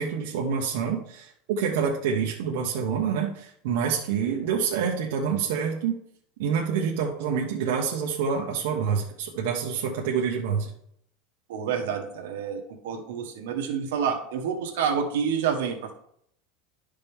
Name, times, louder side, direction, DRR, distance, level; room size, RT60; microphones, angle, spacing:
voice 1, 0.0-6.0 6.4-10.7, right 6 dB, 65° right, -1 dB, 1.2 m, -27 dB
voice 2, 11.5-15.9, right 7 dB, 80° right, 3 dB, 1.4 m, -28 dB
11.5 x 5.2 x 3.6 m, 0.70 s
supercardioid pair, 170°, 0 cm